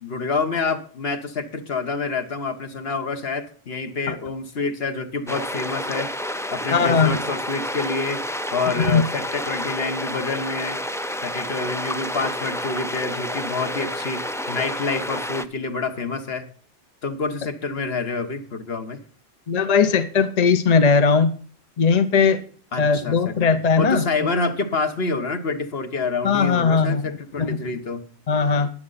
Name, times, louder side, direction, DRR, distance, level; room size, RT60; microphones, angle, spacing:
voice 1, 0.0-6.1 6.5-8.2 8.5-10.8 11.2-16.5 17.0-19.0 22.7-28.0, left 4 dB, 65° left, 6 dB, 1.6 m, -27 dB
sound 1, 5.3-15.5, equal, 5° left, 0.4 m, -29 dB
voice 2, 6.7-7.2 8.8-9.0 19.5-21.3 21.8-22.4 22.8-24.0 26.2-27.0 27.4-27.6 28.3-28.7, left 5 dB, 40° left, 10 dB, 0.8 m, -19 dB
20.5 x 7.7 x 4.1 m, 0.43 s
omnidirectional pair, 1.1 m